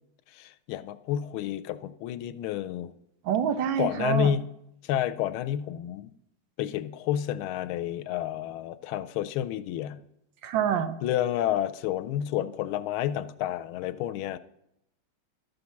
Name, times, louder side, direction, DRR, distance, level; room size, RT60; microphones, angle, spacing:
voice 1, 0.3-2.9 3.8-4.4 4.8-6.1 6.6-10.0 11.0-14.4, left 11 dB, 80° left, 13 dB, 1.4 m, -30 dB
voice 2, 3.2-4.3 10.4-11.0, right 8 dB, 70° right, 10 dB, 1.4 m, -26 dB
13.0 x 5.3 x 5.8 m, 0.80 s
omnidirectional pair, 2.4 m